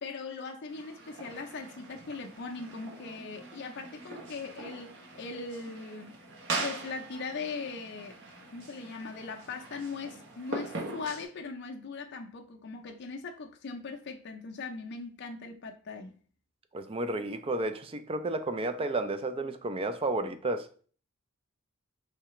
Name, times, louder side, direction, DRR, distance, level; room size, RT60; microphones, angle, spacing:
voice 1, 0.0-6.2 6.6-8.2 8.5-16.2, left 4 dB, 50° left, 0.5 m, -40 dB
sound 1, 0.7-11.2, right 2 dB, 55° right, 0.9 m, -41 dB
voice 2, 16.7-20.7, right 2 dB, 25° right, 0.3 m, -32 dB
4.7 x 3.3 x 3.0 m
head